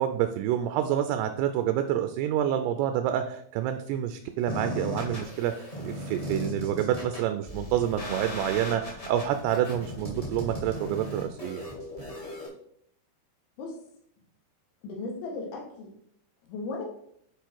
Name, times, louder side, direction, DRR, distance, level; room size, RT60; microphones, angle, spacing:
voice 1, 0.0-11.6, right 10 dB, 80° right, 8 dB, 2.4 m, -28 dB
sound 1, 4.5-12.5, left 1 dB, 25° left, 0.7 m, -37 dB
voice 2, 14.8-15.9 16.5-16.9, left 3 dB, 85° left, 0 dB, 4.2 m, -36 dB
8.9 x 4.9 x 4.6 m, 0.69 s
omnidirectional pair, 5.1 m